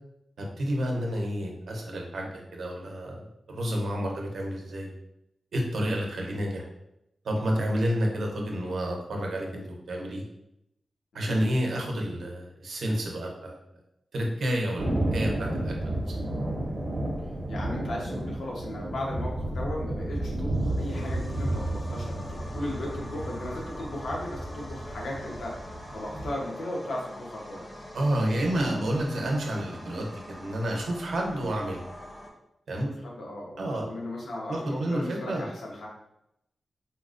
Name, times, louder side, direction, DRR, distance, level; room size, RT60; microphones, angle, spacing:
voice 1, 0.4-4.9 5.5-6.7 7.2-10.2 11.1-13.5 14.1-15.7 16.1-16.2 27.9-31.8 32.7-32.9 33.6-33.9 34.5-35.4, equal, 85° right, 0 dB, 0.6 m, -30 dB
voice 2, 11.1-11.5 17.5-25.6 25.9-27.7 32.8-35.9, left 1 dB, 90° left, -3 dB, 0.8 m, -36 dB
Thunder, 14.8-26.3, right 1 dB, 25° right, 0.6 m, -32 dB
sound 1, 20.4-32.3, left 1 dB, 30° left, 0.6 m, -44 dB
4.1 x 2.1 x 2.5 m, 0.83 s
wide cardioid pair, 135°, 0 cm